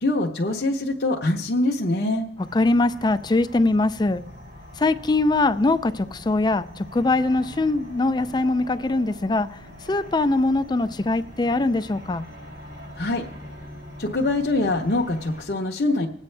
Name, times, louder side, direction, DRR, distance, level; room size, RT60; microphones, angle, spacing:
voice 1, 0.0-2.3 13.0-13.2 14.0-16.1, left 2 dB, 55° left, 0.9 m, -24 dB
sound 1, 2.4-15.4, left 1 dB, 75° right, 6.1 m, -43 dB
voice 2, 2.5-4.2 4.8-9.6 9.9-12.2, left 2 dB, 25° left, 0.4 m, -22 dB
20.5 x 8.3 x 3.3 m
head